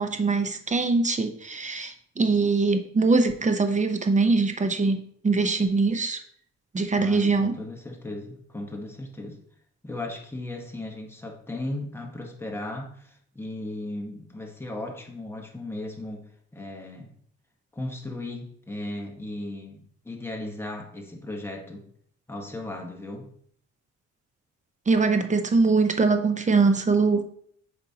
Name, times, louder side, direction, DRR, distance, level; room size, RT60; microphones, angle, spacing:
voice 1, 0.0-5.0 5.2-6.2 6.7-7.5 24.9-27.2, right 4 dB, 25° right, 7 dB, 0.8 m, -22 dB
voice 2, 7.0-9.4 9.8-16.2 16.5-17.1 17.7-21.9 22.3-23.3, left 1 dB, 10° left, 1 dB, 1.5 m, -36 dB
8.1 x 5.3 x 2.9 m, 0.62 s
cardioid pair, 90°, 30 cm